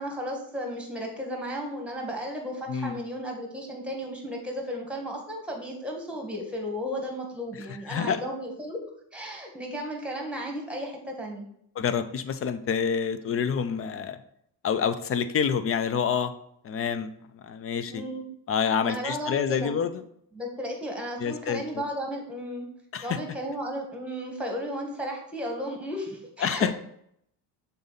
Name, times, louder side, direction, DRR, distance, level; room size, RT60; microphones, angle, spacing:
voice 1, 0.0-8.8 9.1-11.5 17.9-18.3 18.8-19.8 20.3-22.7 23.0-26.8, equal, 5° right, 1 dB, 1.6 m, -34 dB
voice 2, 2.7-3.0 7.9-8.2 11.8-14.2 14.6-16.3 16.6-18.0 18.5-19.9 21.2-21.8 22.9-23.2 26.4-26.7, left 7 dB, 35° left, 11 dB, 0.6 m, -27 dB
6.8 x 3.9 x 4.0 m, 0.72 s
cardioid pair, 110°, 38 cm